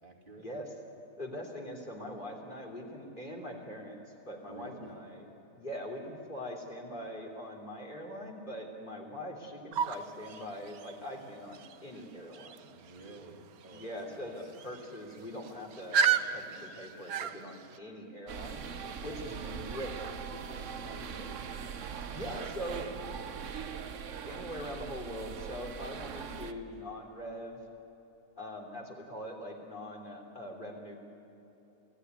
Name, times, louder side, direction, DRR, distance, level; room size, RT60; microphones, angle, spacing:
voice 1, 0.0-0.5 4.5-5.0 12.7-14.5 19.0-21.4 22.4-23.6 25.9-26.8, right 1 dB, 35° right, -2 dB, 2.7 m, -51 dB
voice 2, 1.2-4.0 4.2-5.3 5.6-12.7 13.7-18.6 19.0-20.0 22.1-22.9 24.2-27.6 28.4-31.0, equal, 35° left, 0 dB, 3.4 m, -42 dB
sound 1, 9.7-17.8, right 7 dB, 80° right, 1.4 m, -35 dB
sound 2, 18.3-26.5, right 6 dB, 60° right, 1.3 m, -41 dB
28.0 x 17.0 x 9.6 m, 3.0 s
omnidirectional pair, 1.5 m